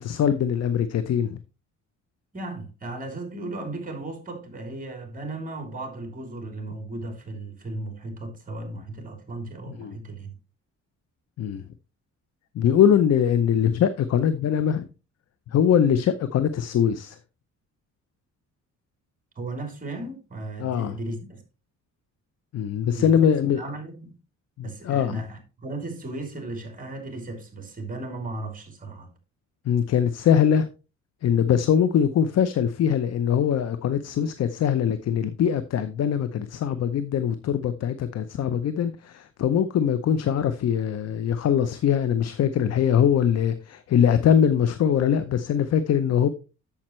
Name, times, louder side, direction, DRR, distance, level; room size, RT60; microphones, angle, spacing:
voice 1, 0.0-1.4 9.8-9.9 11.4-11.6 12.5-14.9 15.5-17.2 20.6-21.0 22.5-23.6 24.6-25.2 29.7-30.7 31.2-46.3, left 8 dB, 55° left, 0.7 m, -22 dB
voice 2, 2.3-10.3 19.3-21.4 22.9-24.2 24.6-29.1, right 2 dB, 25° right, 3.1 m, -36 dB
8.8 x 7.2 x 3.1 m
cardioid pair, 90°, 30 cm